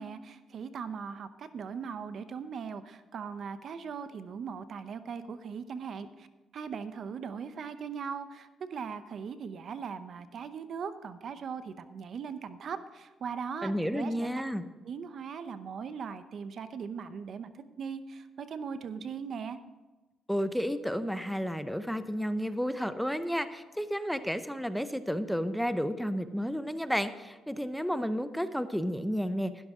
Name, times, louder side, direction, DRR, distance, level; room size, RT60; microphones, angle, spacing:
voice 1, 0.0-6.3 6.5-14.4 14.8-19.6, right 6 dB, 60° right, 12 dB, 0.7 m, -39 dB
voice 2, 13.6-14.6 20.3-29.5, equal, ahead, 11 dB, 0.6 m, -31 dB
11.5 x 11.5 x 3.7 m, 1.2 s
cardioid pair, 90°, 0 cm